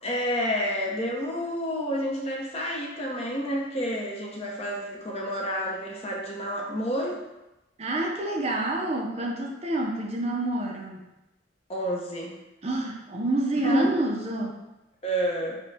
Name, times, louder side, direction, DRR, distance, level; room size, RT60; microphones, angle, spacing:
voice 1, 0.0-7.2 11.7-12.3 13.6-13.9 15.0-15.6, equal, 30° left, -2 dB, 0.7 m, -29 dB
voice 2, 7.8-11.0 12.6-14.6, right 1 dB, 30° right, -1 dB, 0.5 m, -28 dB
6.3 x 2.2 x 3.3 m, 0.97 s
head